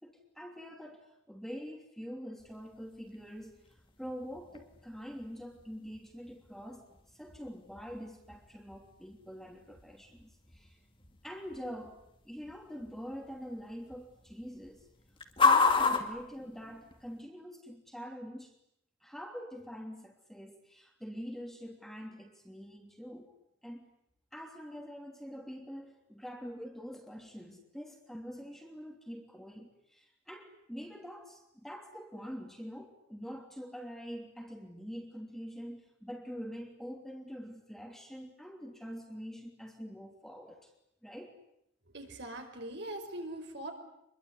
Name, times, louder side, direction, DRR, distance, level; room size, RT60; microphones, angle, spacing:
voice 1, 0.0-10.8 11.2-14.9 15.4-18.6 19.0-23.3 23.6-23.9 24.3-40.7 41.0-41.3, equal, ahead, 2 dB, 3.0 m, -45 dB
sound 1, 2.4-17.2, left 4 dB, 25° left, 2.5 m, -35 dB
voice 2, 41.9-43.7, right 1 dB, 55° right, 5 dB, 5.2 m, -41 dB
26.0 x 22.5 x 9.8 m, 0.76 s
head